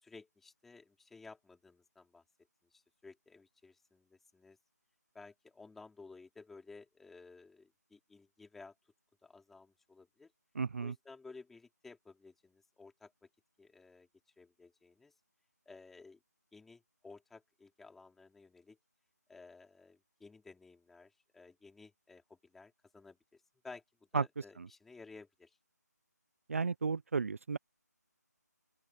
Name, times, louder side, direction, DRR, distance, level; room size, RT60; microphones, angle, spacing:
voice 1, 0.0-2.2 2.7-4.6 5.1-8.7 9.2-10.3 10.8-13.1 13.6-14.1 14.4-15.1 15.7-16.2 16.5-18.8 19.3-23.8 24.1-25.6, left 4 dB, ahead, 4.3 m, -55 dB
voice 2, 10.6-10.9 24.1-24.2 26.5-27.6, right 5 dB, 50° right, 0.7 m, -33 dB
open air
figure-of-eight pair, 170°, 10 cm